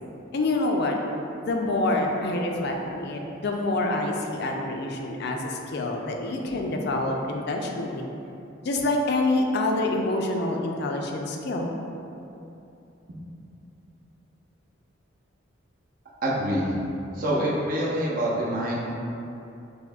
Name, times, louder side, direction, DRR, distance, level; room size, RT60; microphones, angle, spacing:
voice 1, 0.3-1.0 1.4-8.1 8.6-11.7, left 2 dB, 60° left, 1 dB, 0.4 m, -26 dB
voice 2, 16.2-16.7 17.1-18.8, right 1 dB, 45° right, -6 dB, 0.7 m, -25 dB
6.2 x 2.7 x 2.3 m, 2.8 s
head